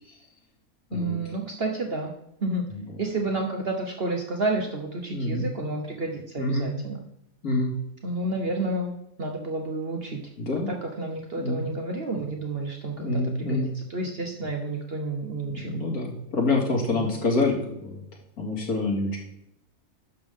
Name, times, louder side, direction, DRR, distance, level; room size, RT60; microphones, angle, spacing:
voice 1, 0.9-2.1 2.4-2.6 3.0-7.0 8.0-10.2 10.5-15.8 16.9-17.1, right 2 dB, 45° right, 2 dB, 1.1 m, -30 dB
voice 2, 5.1-5.5 6.4-6.7 7.4-7.8 10.4-10.7 11.4-11.6 13.0-13.7 15.5-17.6 17.8-18.0 18.4-19.2, left 2 dB, 85° left, -1 dB, 2.7 m, -26 dB
11.0 x 6.9 x 3.7 m, 0.78 s
omnidirectional pair, 1.5 m